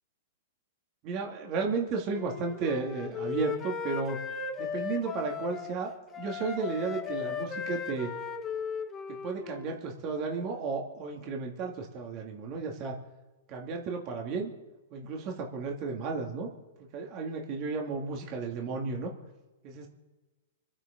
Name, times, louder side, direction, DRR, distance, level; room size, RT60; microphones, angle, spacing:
voice 1, 1.0-4.2 4.6-5.9 6.2-8.1 9.2-13.0 13.5-14.5 14.9-16.5 16.9-19.1 19.6-19.9, right 4 dB, 40° right, 0 dB, 2.8 m, -33 dB
Wind instrument woodwind instrument, 2.1-5.8 6.1-9.7, left 6 dB, 20° left, 1.5 m, -37 dB
25.5 x 9.0 x 5.5 m, 1.1 s
hypercardioid pair, 135°, 0 cm